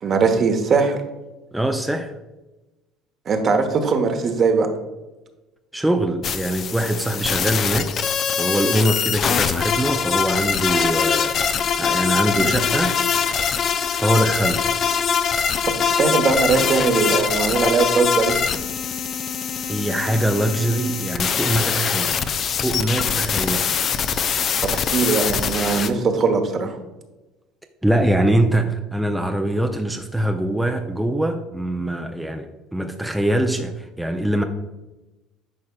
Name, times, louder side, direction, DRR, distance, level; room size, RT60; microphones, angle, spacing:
voice 1, 0.0-1.0 3.3-4.7 12.4-12.5 15.8-18.4 24.6-26.8, right 4 dB, 45° right, 5 dB, 1.1 m, -20 dB
voice 2, 1.5-2.1 5.7-7.9 8.4-13.0 13.9-14.7 19.6-22.2 22.5-23.6 27.8-34.4, right 1 dB, 5° right, 4 dB, 0.6 m, -23 dB
sound 1, 6.2-25.9, left 7 dB, 45° left, 0.5 m, -23 dB
10.5 x 5.3 x 2.3 m, 1.1 s
hypercardioid pair, 65°, 0 cm